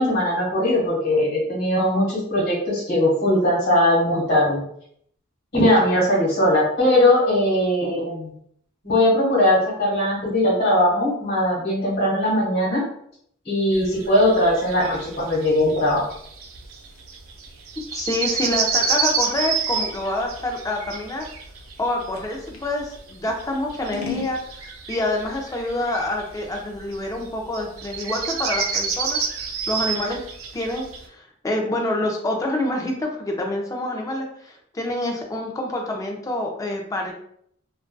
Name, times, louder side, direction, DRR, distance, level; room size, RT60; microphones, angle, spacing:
voice 1, 0.0-4.6 5.5-8.3 8.8-12.8 13.4-16.0, left 1 dB, 50° left, -4 dB, 1.2 m, -20 dB
sound 1, 13.7-31.0, right 5 dB, 85° right, 0.4 m, -29 dB
Scissors, 16.5-22.7 23.2-24.4, left 8 dB, 90° left, 0.5 m, -38 dB
voice 2, 17.9-21.2 21.8-24.4 24.9-29.2 29.7-30.2 30.5-37.1, left 1 dB, 15° left, 1 dB, 0.4 m, -27 dB
2.5 x 2.3 x 2.2 m, 0.68 s
head